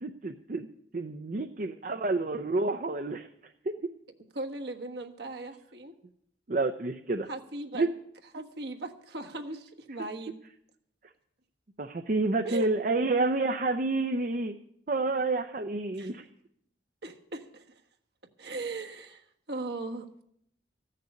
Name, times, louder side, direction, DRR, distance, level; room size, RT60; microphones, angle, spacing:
voice 1, 0.0-0.7 0.9-3.3 3.6-3.9 6.5-7.3 7.7-7.9 10.0-10.1 11.8-14.6 14.9-16.3, right 3 dB, 45° right, 6 dB, 0.6 m, -29 dB
voice 2, 4.3-5.9 7.3-7.9 8.3-10.4 12.4-12.7 16.0-16.1 17.0-17.8 18.4-20.1, right 2 dB, 70° right, 4 dB, 1.4 m, -38 dB
15.0 x 6.7 x 9.8 m, 0.73 s
head